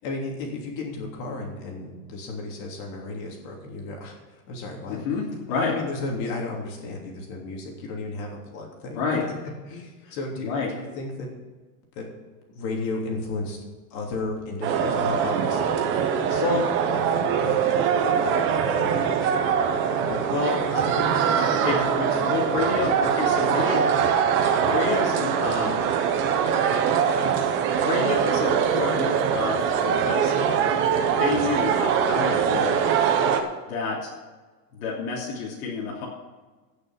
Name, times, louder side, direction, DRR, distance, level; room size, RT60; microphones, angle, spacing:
voice 1, 0.0-5.0 5.7-9.2 9.7-11.3 11.9-12.1 12.5-13.6 13.9-16.4 16.9-20.2 20.7-22.2, left 2 dB, 35° left, 0 dB, 3.2 m, -34 dB
voice 2, 4.9-5.7 8.9-9.2 10.4-10.7 16.4-16.7 20.3-20.6 21.6-23.9 24.7-25.8 26.6-26.9 27.8-29.6 29.8-30.3 31.1-32.8 33.7-34.1 34.7-36.1, left 4 dB, 55° left, -4 dB, 3.1 m, -29 dB
sound 1, 14.6-33.4, right 7 dB, 25° right, 0.9 m, -23 dB
16.5 x 6.7 x 5.9 m, 1.3 s
supercardioid pair, 160°, 49 cm